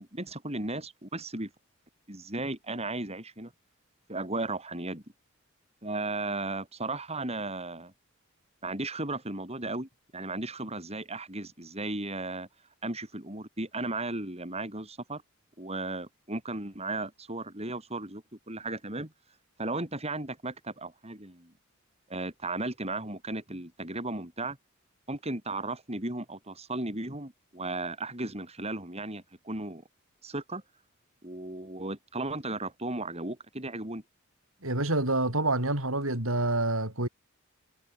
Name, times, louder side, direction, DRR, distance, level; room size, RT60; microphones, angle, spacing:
voice 1, 0.0-1.5 2.1-3.5 4.1-5.0 5.8-7.9 8.6-12.5 12.8-15.2 15.6-19.1 19.6-21.5 22.1-24.6 25.1-29.8 30.2-30.6 31.2-34.0, right 2 dB, 30° right, 7.7 m, -35 dB
voice 2, 34.6-37.1, right 2 dB, 80° right, 6.8 m, -27 dB
head